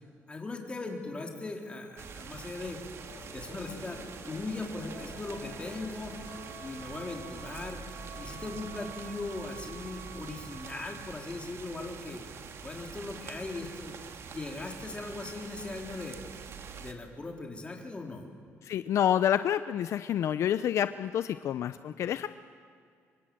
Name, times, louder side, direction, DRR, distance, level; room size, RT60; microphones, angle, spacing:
voice 1, 0.3-2.8 3.3-4.0 4.3-6.2 6.6-7.8 8.2-12.2 12.6-16.2 16.8-18.3, left 3 dB, 20° left, 1 dB, 3.8 m, -39 dB
sound 1, 2.0-16.9, right 6 dB, 55° right, 1.9 m, -45 dB
sound 2, 3.0-9.3, left 3 dB, 45° left, 6.5 m, -50 dB
sound 3, 6.2-11.2, right 13 dB, 85° right, 4.0 m, -50 dB
voice 2, 18.6-22.3, left 10 dB, 65° left, 12 dB, 0.6 m, -28 dB
26.5 x 25.0 x 7.8 m, 2.3 s
cardioid pair, 130°, 5 cm